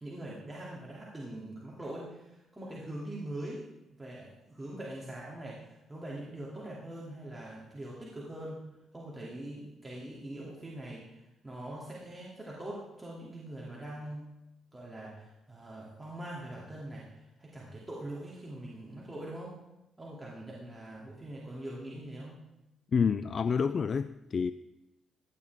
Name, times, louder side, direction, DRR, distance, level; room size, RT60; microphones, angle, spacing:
voice 1, 0.0-3.6 4.0-8.6 8.9-14.3 14.7-19.6 20.0-22.4, right 1 dB, 15° right, -5 dB, 2.8 m, -43 dB
voice 2, 22.9-24.5, left 6 dB, 45° left, 13 dB, 0.4 m, -28 dB
16.0 x 11.0 x 3.6 m, 0.93 s
cardioid pair, 90°, 0 cm